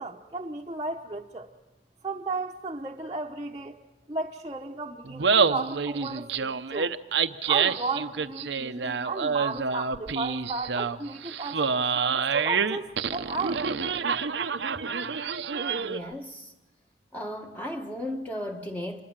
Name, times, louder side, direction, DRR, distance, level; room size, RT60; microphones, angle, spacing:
voice 1, 0.0-1.5 2.0-3.8 4.1-6.9 7.5-13.6, right 3 dB, 25° right, 0.9 m, -34 dB
Laughter, 5.0-16.1, right 5 dB, 85° right, 0.7 m, -27 dB
voice 2, 15.8-16.5 17.1-19.0, left 1 dB, 10° left, 1.1 m, -35 dB
26.5 x 21.5 x 7.4 m
head